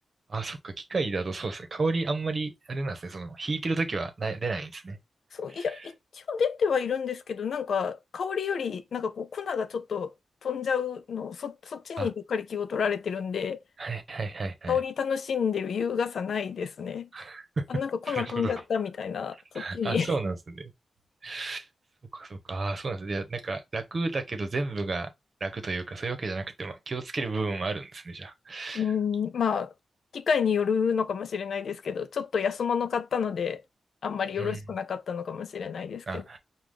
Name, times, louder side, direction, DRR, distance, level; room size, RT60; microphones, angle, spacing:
voice 1, 0.3-5.0 5.5-5.9 12.0-12.1 13.8-14.7 17.1-17.6 18.1-18.5 19.5-20.7 21.2-21.7 22.1-25.1 25.4-28.9 34.4-34.6 36.1-36.4, right 3 dB, 50° right, 1.0 m, -32 dB
voice 2, 5.3-10.1 10.4-13.6 14.7-17.1 17.7-20.1 28.7-29.7 30.1-33.6 34.0-36.2, left 6 dB, 80° left, 0.4 m, -29 dB
4.8 x 2.4 x 3.7 m
cardioid pair, 75°, 0 cm